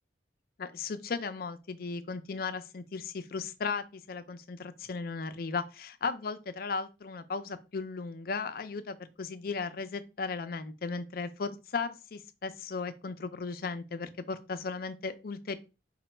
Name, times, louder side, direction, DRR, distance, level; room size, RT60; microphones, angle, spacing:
voice 1, 0.6-15.6, left 4 dB, 55° left, 0.4 m, -36 dB
5.0 x 2.2 x 4.3 m
head